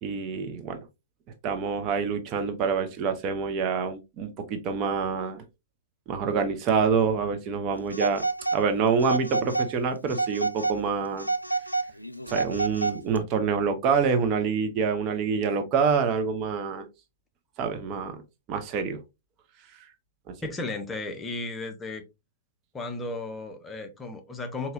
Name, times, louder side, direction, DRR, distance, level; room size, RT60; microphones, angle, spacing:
voice 1, 0.0-0.9 1.4-5.4 6.1-8.2 8.5-11.3 12.3-16.9 17.6-18.2 18.5-19.0, right 5 dB, 35° right, 0.5 m, -26 dB
Telephone, 7.9-8.6 9.0-9.7 10.1-10.8 11.2-13.2, right 3 dB, 90° left, 0.3 m, -29 dB
voice 2, 20.4-22.0 22.7-24.7, left 2 dB, 15° left, 0.7 m, -34 dB
3.9 x 2.8 x 2.4 m
figure-of-eight pair, 105°, 0 cm